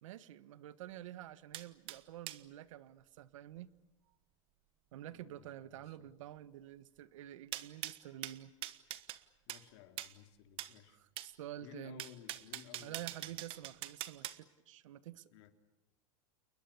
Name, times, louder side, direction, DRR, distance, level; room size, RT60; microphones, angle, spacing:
voice 1, 0.0-3.7 4.9-8.5 10.9-12.0 12.8-15.3, right 13 dB, 75° right, 15 dB, 1.4 m, -49 dB
sound 1, 1.5-2.4 7.5-9.2 9.5-9.6 10.0-10.1 10.6-10.7 11.2-11.3 12.0-14.4, right 15 dB, 35° right, 1.3 m, -43 dB
voice 2, 5.1-6.1 9.5-11.0 11.6-13.2 15.3-15.5, left 11 dB, 55° left, 7 dB, 3.1 m, -57 dB
29.5 x 21.5 x 8.6 m, 1.1 s
supercardioid pair, 160°, 16 cm